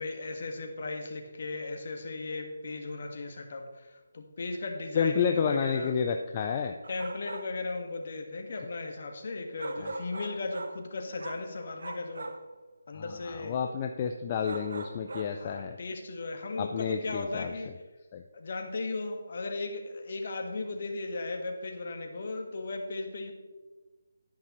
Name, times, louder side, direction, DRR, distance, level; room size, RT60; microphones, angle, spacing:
voice 1, 0.0-3.9 4.1-5.9 6.9-12.3 12.9-13.5 15.4-17.7 18.3-23.3, left 3 dB, 50° left, 4 dB, 1.6 m, -36 dB
voice 2, 4.9-6.7 9.8-9.9 12.9-15.8 16.6-17.5 18.1-18.2, left 6 dB, 30° left, 4 dB, 0.5 m, -30 dB
sound 1, 6.8-7.6 9.6-10.8 11.2-11.5 11.8-12.5 14.4-15.4, right 2 dB, 65° right, 1.0 m, -40 dB
11.0 x 10.0 x 3.1 m, 1.2 s
figure-of-eight pair, 155°, 0 cm